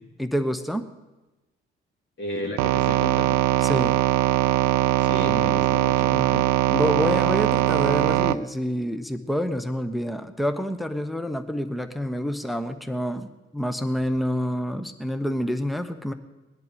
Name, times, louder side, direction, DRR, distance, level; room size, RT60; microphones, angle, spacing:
voice 1, 0.2-0.9 3.6-4.0 6.7-16.1, equal, ahead, 10 dB, 1.0 m, -27 dB
voice 2, 2.2-3.4 5.0-6.4, left 1 dB, 35° left, -1 dB, 2.1 m, -32 dB
sound 1, 2.6-8.3, right 13 dB, 65° right, 0.6 m, -21 dB
19.0 x 10.5 x 5.2 m, 1.1 s
figure-of-eight pair, 45°, 31 cm